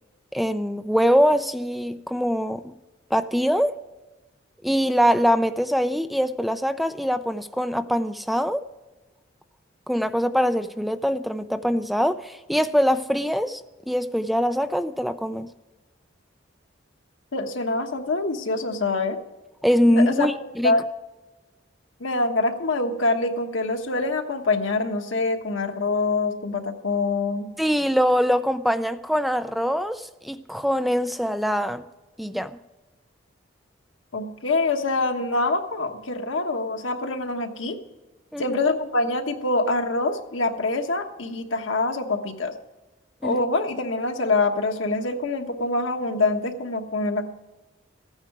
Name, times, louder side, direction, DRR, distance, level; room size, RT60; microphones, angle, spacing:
voice 1, 0.3-2.7 3.1-3.8 4.6-8.6 9.9-15.5 19.6-20.7 27.6-31.8 32.2-32.5 38.3-38.6 43.2-43.4, equal, ahead, 10 dB, 0.4 m, -23 dB
voice 2, 17.3-19.2 19.9-20.3 20.6-20.8 22.0-27.5 34.1-37.8 38.4-42.5 43.2-47.3, left 3 dB, 85° left, 5 dB, 1.3 m, -25 dB
14.5 x 9.6 x 4.8 m, 1.1 s
head